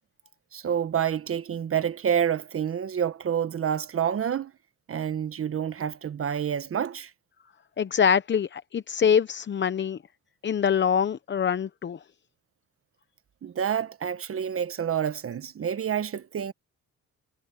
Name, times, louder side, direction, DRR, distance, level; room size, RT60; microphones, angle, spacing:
voice 1, 0.5-4.5 4.9-7.1 13.4-16.5, right 8 dB, 45° right, 1.2 m, -28 dB
voice 2, 7.8-10.0 10.4-12.0, left 7 dB, 40° left, 0.8 m, -24 dB
cardioid pair, 90°, 30 cm